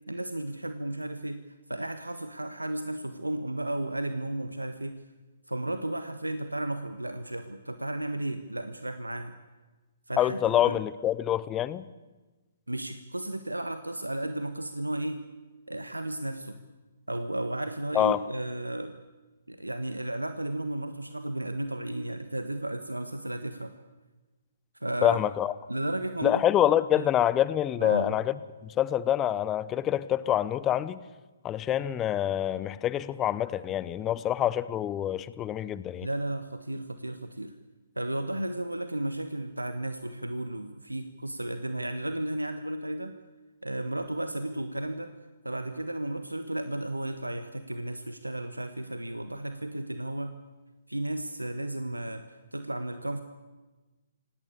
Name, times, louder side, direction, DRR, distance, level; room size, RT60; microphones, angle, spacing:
voice 1, 0.1-1.4 1.7-5.0 5.5-9.3 10.1-10.8 12.7-15.2 15.7-16.6 17.1-19.0 19.5-23.7 24.8-25.2 25.7-26.4 27.0-27.1 27.8-28.2 36.0-37.5 38.0-43.2 43.6-45.1 45.4-50.4 50.9-53.2, right 1 dB, 90° right, 9 dB, 1.3 m, -33 dB
voice 2, 10.2-11.8 17.9-18.2 25.0-25.5 26.2-28.3 28.6-31.0 31.4-36.1, left 11 dB, 20° left, 17 dB, 0.9 m, -26 dB
26.0 x 18.0 x 8.4 m, 1.2 s
figure-of-eight pair, 125°, 0 cm